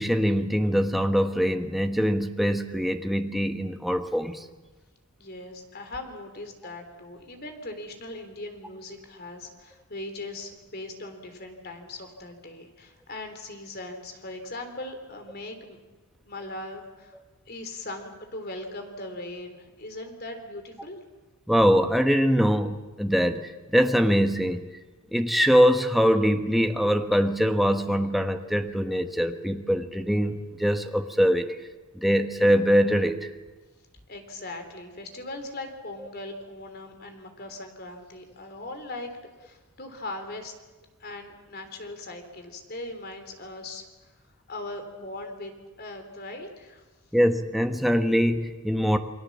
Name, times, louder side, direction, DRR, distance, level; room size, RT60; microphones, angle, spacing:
voice 1, 0.0-4.5 21.5-24.7 25.1-31.5 31.9-33.3 47.1-49.0, equal, ahead, 5 dB, 1.2 m, -23 dB
voice 2, 5.2-15.8 16.2-17.2 17.5-21.0 34.1-39.1 39.4-40.5 41.0-44.1 44.5-45.5 45.8-46.8, left 2 dB, 45° left, 6 dB, 3.5 m, -39 dB
29.0 x 22.0 x 7.4 m, 1.2 s
head